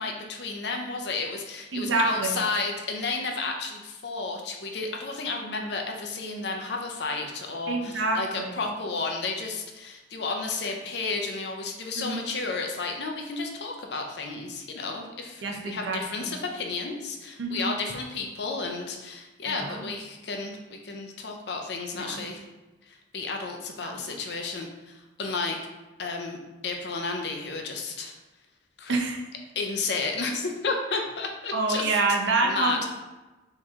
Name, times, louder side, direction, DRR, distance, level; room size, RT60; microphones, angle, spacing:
voice 1, 0.0-22.4 22.9-25.6 26.0-26.4 26.6-28.1 28.8-28.9 29.6-32.0 32.4-32.8, left 3 dB, 60° left, 2 dB, 0.6 m, -32 dB
voice 2, 1.7-2.4 7.7-8.5 12.0-12.1 15.4-16.3 17.4-17.7 19.5-19.9 22.0-22.3 23.8-24.0 28.9-29.2 31.5-32.9, right 3 dB, 70° right, 1 dB, 0.7 m, -27 dB
4.3 x 3.1 x 3.6 m, 1.1 s
head